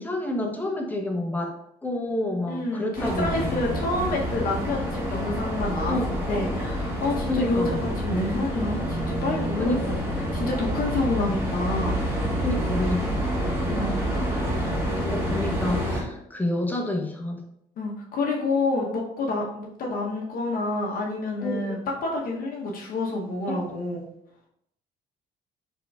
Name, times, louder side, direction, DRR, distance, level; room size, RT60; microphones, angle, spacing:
voice 1, 0.0-1.5 1.8-3.8 5.9-6.2 7.3-7.8 9.6-10.0 12.4-13.3 15.0-17.4 21.4-21.6 23.5-23.6, left 1 dB, 10° left, 1 dB, 0.7 m, -29 dB
voice 2, 2.5-6.0 6.3-7.6 8.0-9.8 10.3-12.0 13.7-14.0 14.6-14.8 17.8-24.0, left 2 dB, 60° left, -2 dB, 0.8 m, -28 dB
sound 1, 3.0-16.0, equal, 15° right, 1.2 m, -28 dB
3.9 x 3.8 x 2.3 m, 0.75 s
cardioid pair, 110°, 17 cm